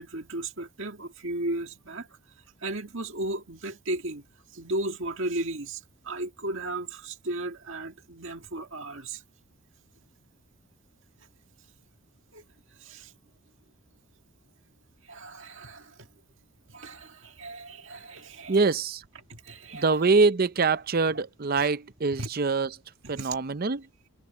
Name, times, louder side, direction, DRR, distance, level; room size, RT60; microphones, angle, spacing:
voice 1, 0.0-2.1 2.6-4.2 4.5-9.2 12.3-12.4 12.8-13.1 15.0-15.9 16.7-18.6 19.3-20.0 21.6-21.7 22.2-22.3 23.0-23.4, right 2 dB, 60° right, 2.2 m, -35 dB
voice 2, 18.5-19.0 19.7-22.7 23.1-23.8, right 4 dB, 40° right, 0.6 m, -24 dB
head